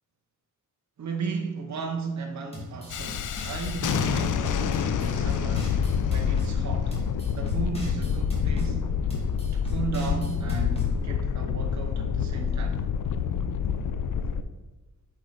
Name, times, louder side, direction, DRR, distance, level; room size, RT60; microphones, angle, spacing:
voice 1, 1.0-7.0 7.4-9.0 9.5-12.8, right 4 dB, 60° right, 1.0 m, -35 dB
sound 1, 2.5-4.3 4.7-6.5 6.9-8.7 9.1-10.9, left 1 dB, 20° left, 2.2 m, -41 dB
Thunderstorm, 2.9-14.4, left 7 dB, 70° left, 0.6 m, -27 dB
8.1 x 5.5 x 4.0 m
cardioid pair, 90°, 33 cm